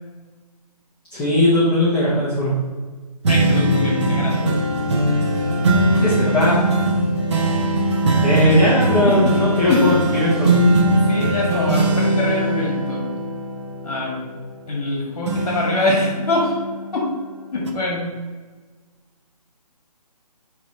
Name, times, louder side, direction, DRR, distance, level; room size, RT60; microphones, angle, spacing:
voice 1, 1.1-2.5 6.0-6.6 8.2-10.6, left 1 dB, 5° left, -9 dB, 0.6 m, -18 dB
sound 1, 3.2-14.9 15.2-17.1 17.6-17.7, right 1 dB, 45° right, 0.9 m, -20 dB
voice 2, 3.3-4.6 8.4-8.6 9.1-9.4 9.6-9.8 10.9-13.0 13.8-14.2 14.7-16.6 16.9-17.0 17.5-18.1, left 2 dB, 45° left, -2 dB, 1.6 m, -24 dB
8.0 x 3.2 x 4.0 m, 1.4 s
hypercardioid pair, 155°, 21 cm